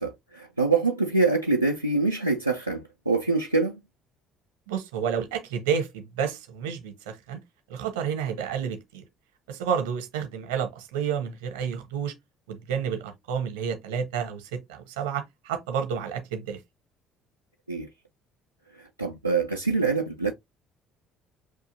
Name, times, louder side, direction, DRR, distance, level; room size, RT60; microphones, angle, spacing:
voice 1, 0.0-3.8 17.7-17.9 18.8-20.3, right 3 dB, 90° right, 0.3 m, -25 dB
voice 2, 4.7-7.4 7.7-9.0 9.5-12.2 12.5-16.6, right 7 dB, 70° right, 0.8 m, -30 dB
6.1 x 2.7 x 2.6 m
figure-of-eight pair, 55°, 0 cm